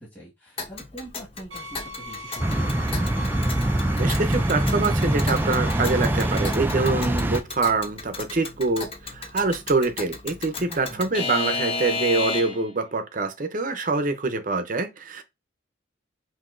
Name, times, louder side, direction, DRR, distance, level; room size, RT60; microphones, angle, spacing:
voice 1, 0.0-2.8 10.7-11.1, right 1 dB, 10° left, 1.6 m, -43 dB
Alarm / Clock, 0.6-12.7, left 3 dB, 30° left, 0.7 m, -34 dB
sound 1, 1.5-6.6, left 1 dB, 90° right, 0.8 m, -39 dB
sound 2, 2.4-7.4, right 1 dB, 10° right, 0.3 m, -24 dB
voice 2, 3.9-15.2, right 3 dB, 45° right, 0.6 m, -25 dB
5.8 x 2.7 x 2.5 m
head